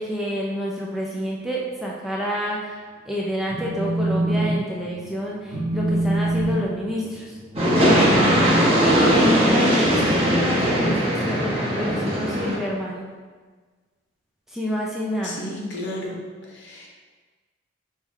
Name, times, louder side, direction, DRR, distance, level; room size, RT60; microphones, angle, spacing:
voice 1, 0.0-7.4 8.8-13.1 14.5-15.4, equal, ahead, -4 dB, 0.4 m, -28 dB
Telephone, 3.3-4.5 4.8-5.1 5.5-11.6, right 1 dB, 60° right, 1.1 m, -26 dB
sound 1, 7.6-12.6, equal, 30° right, 1.0 m, -19 dB
voice 2, 15.2-16.9, left 1 dB, 60° left, -2 dB, 1.0 m, -33 dB
4.6 x 3.2 x 3.5 m, 1.4 s
head